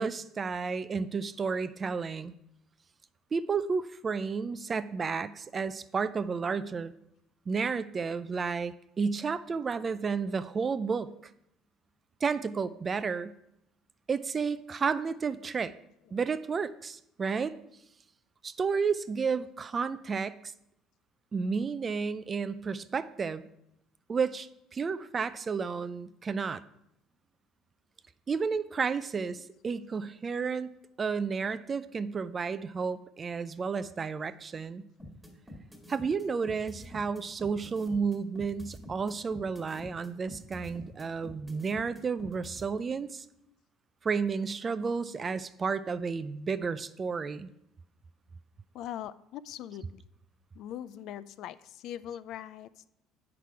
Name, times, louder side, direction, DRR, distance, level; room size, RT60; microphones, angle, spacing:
voice 1, 0.0-2.3 3.3-6.9 7.5-11.1 12.2-13.3 14.1-15.7 16.1-17.6 18.4-20.5 21.3-23.5 24.1-26.6 28.3-34.9 35.9-43.2 44.0-47.5, right 5 dB, 25° right, 14 dB, 0.4 m, -32 dB
sound 1, 35.0-42.6, left 1 dB, ahead, 1.7 m, -46 dB
voice 2, 48.7-50.0 50.5-52.8, left 11 dB, 60° left, 16 dB, 0.3 m, -41 dB
8.3 x 6.0 x 4.6 m, 0.78 s
cardioid pair, 125°, 0 cm